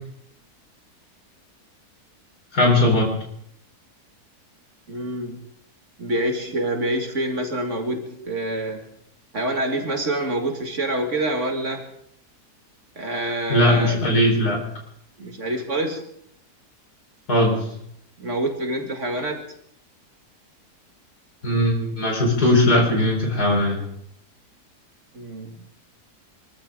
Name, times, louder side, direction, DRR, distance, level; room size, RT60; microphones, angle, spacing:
voice 1, 2.5-3.1 13.5-14.6 17.3-17.6 21.4-23.8, left 1 dB, 70° left, 0 dB, 5.1 m, -19 dB
voice 2, 4.9-5.4 6.0-8.9 9.3-11.9 13.0-14.0 15.2-16.0 18.2-19.5 25.1-25.6, right 1 dB, 50° right, 3 dB, 2.3 m, -26 dB
25.0 x 14.0 x 3.8 m, 0.71 s
omnidirectional pair, 1.7 m